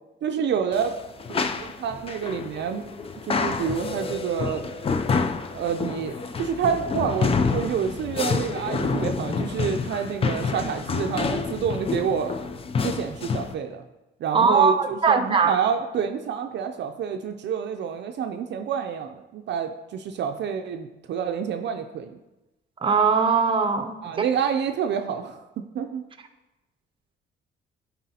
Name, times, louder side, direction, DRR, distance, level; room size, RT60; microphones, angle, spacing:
voice 1, 0.2-0.9 1.3-2.8 3.3-4.6 5.5-12.3 12.8-13.8 14.2-22.2 24.0-26.0, right 7 dB, 60° right, 6 dB, 0.5 m, -28 dB
sound 1, 0.7-13.5, left 4 dB, 30° left, 0.4 m, -28 dB
voice 2, 14.3-15.6 22.8-24.3, right 5 dB, 25° right, 7 dB, 0.7 m, -20 dB
10.0 x 4.1 x 2.8 m, 1.0 s
cardioid pair, 90°, 20 cm